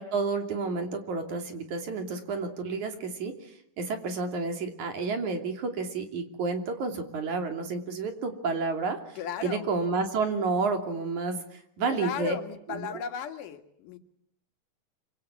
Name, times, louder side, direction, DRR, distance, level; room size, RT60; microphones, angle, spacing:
voice 1, 0.0-12.4 12.7-12.9, right 4 dB, 65° right, 5 dB, 4.2 m, -30 dB
voice 2, 9.2-9.7 11.8-14.0, left 7 dB, 85° left, 6 dB, 3.5 m, -36 dB
26.0 x 25.5 x 8.3 m, 0.74 s
omnidirectional pair, 3.6 m